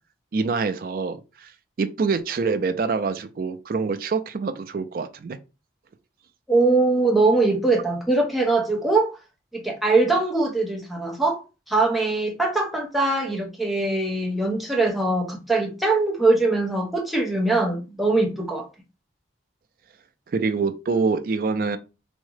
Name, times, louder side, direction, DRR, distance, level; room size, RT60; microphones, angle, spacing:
voice 1, 0.3-1.5 1.8-5.4 20.3-21.8, right 4 dB, 50° right, 0.3 m, -25 dB
voice 2, 6.5-9.2 9.5-18.7, right 3 dB, ahead, 0.6 m, -22 dB
3.5 x 2.1 x 3.2 m
head